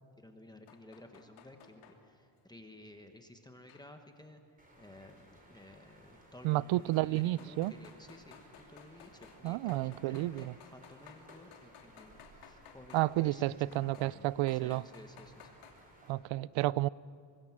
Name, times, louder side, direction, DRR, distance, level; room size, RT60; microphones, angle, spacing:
voice 1, 0.2-14.2 14.5-15.6, left 1 dB, 10° left, 1.2 m, -54 dB
sound 1, 0.7-2.0 3.7-4.3 5.9-6.0 6.9-13.1 13.7-14.1 14.5-15.7, left 8 dB, 85° left, 2.9 m, -57 dB
sound 2, 4.6-16.1, right 1 dB, 15° right, 4.4 m, -60 dB
voice 2, 6.4-7.7 9.4-10.5 12.9-14.8 16.1-16.9, right 17 dB, 70° right, 0.5 m, -31 dB
25.0 x 21.0 x 7.4 m
cardioid pair, 160°, 49 cm